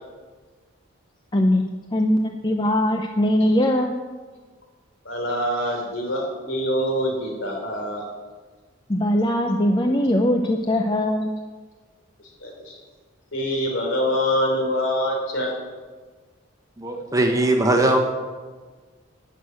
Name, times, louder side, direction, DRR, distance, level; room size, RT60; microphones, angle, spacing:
voice 1, 1.3-1.6 1.9-3.9 8.9-11.3, left 1 dB, 20° left, 3 dB, 0.7 m, -21 dB
voice 2, 5.0-8.0 12.4-12.7 13.3-15.5, equal, 65° left, 1 dB, 3.8 m, -25 dB
voice 3, 16.8-18.0, right 1 dB, 15° right, 2 dB, 1.2 m, -20 dB
12.5 x 6.4 x 9.4 m, 1.4 s
head